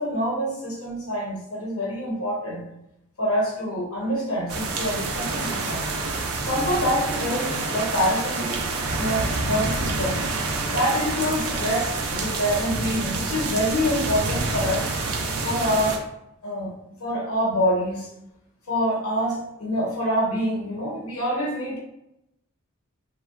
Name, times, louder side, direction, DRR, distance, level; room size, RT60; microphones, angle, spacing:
voice 1, 0.0-2.6 3.2-5.8 6.5-8.6 9.0-10.2 10.7-14.9 15.4-16.0 16.4-16.7 17.0-18.1 18.7-21.8, equal, 85° left, -4 dB, 0.9 m, -26 dB
sound 1, 4.5-16.0, right 3 dB, 85° right, 0.4 m, -27 dB
3.0 x 2.2 x 2.3 m, 0.84 s
head